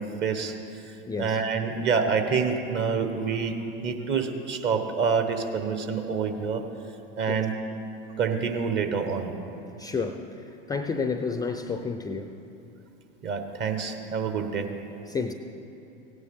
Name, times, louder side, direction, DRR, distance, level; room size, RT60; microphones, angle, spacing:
voice 1, 0.0-6.6 7.2-7.5 8.2-9.3 13.2-14.7, right 5 dB, 40° right, 6 dB, 1.1 m, -27 dB
voice 2, 1.1-1.4 7.3-7.5 9.8-12.3 15.1-15.3, left 4 dB, 15° left, 7 dB, 0.4 m, -31 dB
16.5 x 9.5 x 3.6 m, 2.8 s
hypercardioid pair, 85°, 29 cm